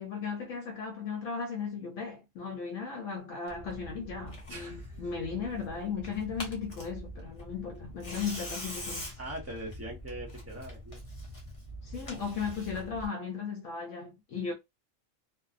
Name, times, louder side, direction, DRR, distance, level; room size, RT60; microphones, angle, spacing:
voice 1, 0.0-9.1 11.8-14.5, left 5 dB, 75° left, 0.9 m, -36 dB
Tearing, 3.5-13.1, left 1 dB, 30° left, 0.7 m, -43 dB
voice 2, 4.5-5.1 9.2-11.0, right 1 dB, 20° right, 0.4 m, -42 dB
2.6 x 2.0 x 2.4 m
omnidirectional pair, 1.4 m